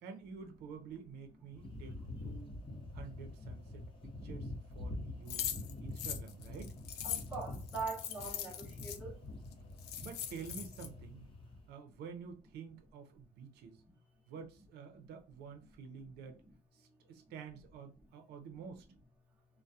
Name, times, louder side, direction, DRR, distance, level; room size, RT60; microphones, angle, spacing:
voice 1, 0.0-2.5 2.9-5.5 5.8-6.8 10.0-11.3 11.7-13.8 14.3-16.4 16.7-18.9, right 6 dB, 75° right, 0.6 m, -49 dB
sound 1, 1.5-11.7, left 2 dB, 30° left, 0.8 m, -46 dB
sound 2, 5.3-9.0 9.5-9.6 9.8-10.9, left 10 dB, 75° left, 0.4 m, -41 dB
voice 2, 7.0-9.2 17.1-17.2, right 4 dB, 10° right, 0.7 m, -42 dB
2.2 x 2.1 x 2.7 m
cardioid pair, 110°, 17 cm